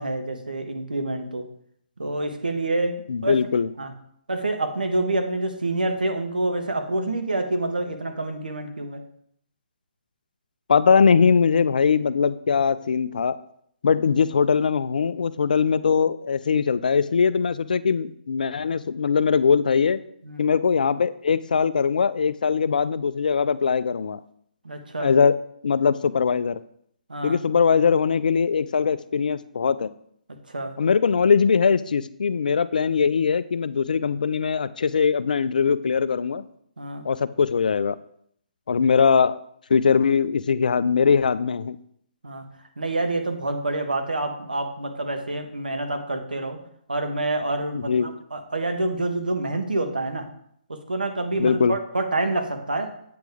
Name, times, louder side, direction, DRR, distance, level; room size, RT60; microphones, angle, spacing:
voice 1, 0.0-1.4 2.0-3.0 3.2-3.4 3.8-3.9 4.3-9.0 20.2-20.5 24.6-25.1 27.1-27.4 30.5-30.7 36.8-37.1 42.2-42.4 42.8-46.6 46.9-50.3 50.7-52.9, right 2 dB, 85° right, 6 dB, 1.2 m, -27 dB
voice 2, 3.1-3.7 10.7-13.4 13.8-20.0 20.4-24.2 25.0-25.4 25.6-26.6 27.2-29.9 30.8-36.4 37.0-38.0 38.7-39.4 39.7-41.8 47.8-48.1 51.4-51.7, left 6 dB, 70° left, 16 dB, 0.4 m, -21 dB
8.5 x 6.0 x 3.5 m, 0.68 s
figure-of-eight pair, 135°, 5 cm